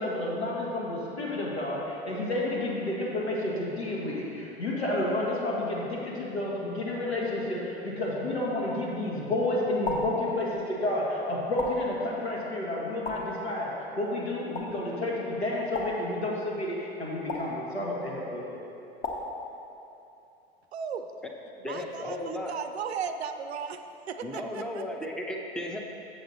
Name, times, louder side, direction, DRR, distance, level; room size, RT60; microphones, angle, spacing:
voice 1, 0.0-18.6, left 1 dB, 80° left, -5 dB, 1.8 m, -30 dB
sound 1, 9.9-10.3 11.6-12.0 13.1-13.4 14.5-14.8 15.7-16.2 17.3-17.6 19.0-19.4, left 3 dB, 25° left, 1.0 m, -34 dB
voice 2, 20.7-21.1 21.6-24.8, right 6 dB, 75° right, 8 dB, 0.5 m, -36 dB
voice 3, 21.6-22.5 24.2-25.8, left 1 dB, ahead, 1 dB, 0.6 m, -35 dB
7.7 x 7.2 x 4.0 m, 2.8 s
figure-of-eight pair, 85°, 32 cm